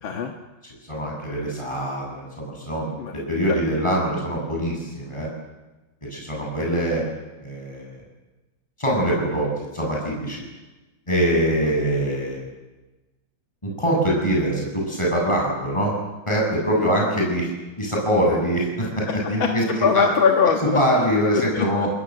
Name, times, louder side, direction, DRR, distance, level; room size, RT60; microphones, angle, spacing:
voice 1, 0.0-0.3 3.0-3.1 16.8-16.9 19.1-20.8 21.3-21.9, left 6 dB, 85° left, 3 dB, 2.3 m, -22 dB
voice 2, 0.6-5.3 6.1-7.0 7.4-8.0 8.8-10.4 11.1-12.4 13.6-15.9 16.3-17.5 17.8-20.0 20.7-21.9, equal, 15° left, -2 dB, 8.1 m, -23 dB
30.0 x 20.5 x 7.9 m, 1.1 s
omnidirectional pair, 2.1 m